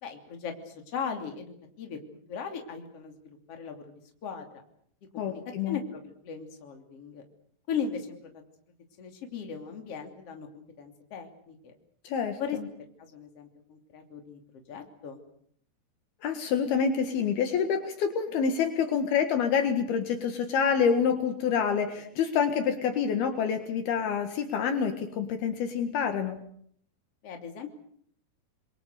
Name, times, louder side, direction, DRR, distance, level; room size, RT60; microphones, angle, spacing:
voice 1, 0.0-2.0 2.3-4.5 5.1-5.4 5.7-7.2 7.7-8.2 9.0-11.7 12.4-12.6 13.0-15.2 27.2-27.7, left 6 dB, 40° left, 4 dB, 3.5 m, -38 dB
voice 2, 5.2-5.8 12.1-12.6 16.2-26.4, left 6 dB, 70° left, 7 dB, 3.5 m, -27 dB
28.5 x 23.0 x 6.7 m, 0.65 s
omnidirectional pair, 4.8 m